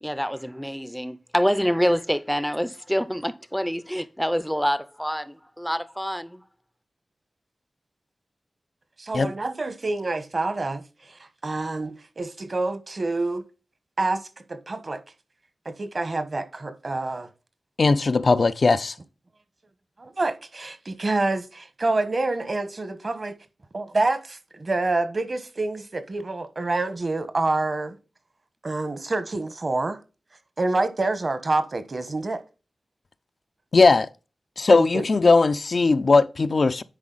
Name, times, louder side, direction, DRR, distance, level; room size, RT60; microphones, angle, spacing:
voice 1, 0.0-6.4, equal, ahead, 0.5 m, -26 dB
voice 2, 9.0-10.8 11.4-13.4 14.0-15.0 15.6-17.3 20.0-23.4 23.7-28.0 28.6-30.0 30.6-32.4 34.7-35.1, right 2 dB, 55° right, 1.2 m, -27 dB
voice 3, 17.8-18.9 33.7-34.1 34.6-36.8, left 3 dB, 60° left, 0.5 m, -18 dB
9.7 x 4.1 x 4.0 m
cardioid pair, 50°, 0 cm